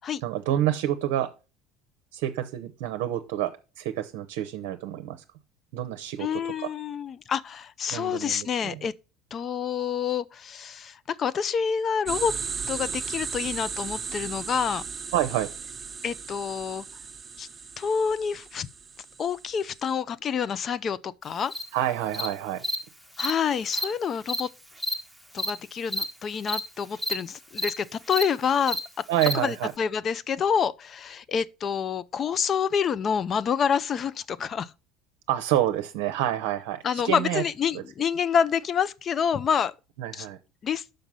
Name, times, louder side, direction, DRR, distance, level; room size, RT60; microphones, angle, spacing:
voice 1, 0.2-1.3 2.1-5.2 5.7-6.7 7.9-8.8 15.1-15.5 21.7-22.6 29.1-29.7 35.3-37.4 37.7-37.8 40.0-40.4, right 12 dB, 75° right, 0.6 m, -28 dB
voice 2, 6.2-8.9 9.3-12.3 12.7-14.8 16.0-16.8 17.4-17.5 17.8-18.7 19.2-21.5 23.2-24.5 25.3-28.8 29.3-34.7 36.8-39.7 40.1-40.3 40.6-40.8, left 7 dB, 40° left, 0.4 m, -27 dB
sound 1, 12.1-19.8, right 5 dB, 25° right, 1.0 m, -36 dB
Cricket, 21.5-21.6 22.1-22.3 22.6-22.8 23.2-23.3 23.7-23.8 24.3-24.4 24.8-24.9 25.4-25.5 25.9-26.0 26.5-26.6 27.0-27.1 27.6-27.7 28.1-28.2 28.7-28.8 29.2-29.3, equal, 5° left, 1.1 m, -28 dB
5.9 x 5.2 x 5.3 m
hypercardioid pair, 80°, 0 cm